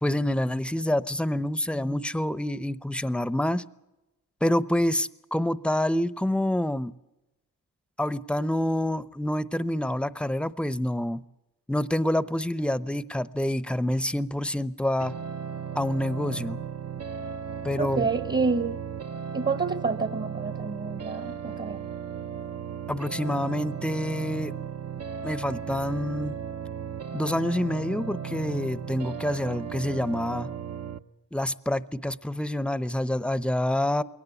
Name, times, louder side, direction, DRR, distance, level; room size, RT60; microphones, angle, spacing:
voice 1, 0.0-3.6 4.4-6.9 8.0-11.2 11.7-15.2 15.8-16.6 17.6-18.1 22.9-24.5 25.2-26.3 27.1-30.5 31.3-34.0, left 1 dB, 5° left, 17 dB, 0.7 m, -27 dB
sound 1, 15.0-31.0, right 7 dB, 55° right, 0.8 m, -36 dB
voice 2, 17.8-18.8 19.3-21.8, right 4 dB, 35° right, 12 dB, 1.1 m, -28 dB
22.0 x 18.0 x 8.3 m, 0.99 s
wide cardioid pair, 90°, 32 cm